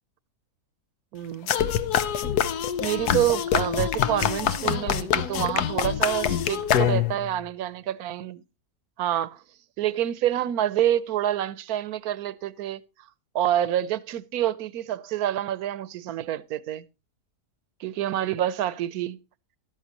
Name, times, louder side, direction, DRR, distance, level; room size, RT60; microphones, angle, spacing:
voice 1, 1.1-1.5 2.8-8.4 9.0-9.4 9.8-12.8 13.3-16.8 17.8-19.2, right 12 dB, 70° right, 1.2 m, -27 dB
sound 1, 1.5-7.3, left 9 dB, 80° left, 1.3 m, -25 dB
13.5 x 12.0 x 2.8 m
omnidirectional pair, 1.7 m